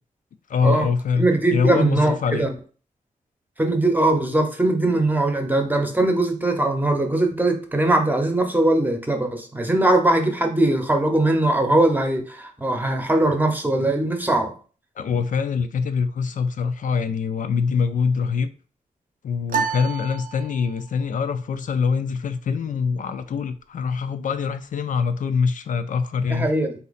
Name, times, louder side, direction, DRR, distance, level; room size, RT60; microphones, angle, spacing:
voice 1, 0.5-2.5 15.0-18.5 19.2-26.5, left 5 dB, 65° left, 0.4 m, -24 dB
voice 2, 1.2-2.5 3.6-14.5 26.3-26.7, right 2 dB, 10° right, 0.8 m, -20 dB
sound 1, 19.5-21.0, right 7 dB, 70° right, 0.4 m, -29 dB
4.0 x 2.8 x 4.0 m
wide cardioid pair, 130°, 15 cm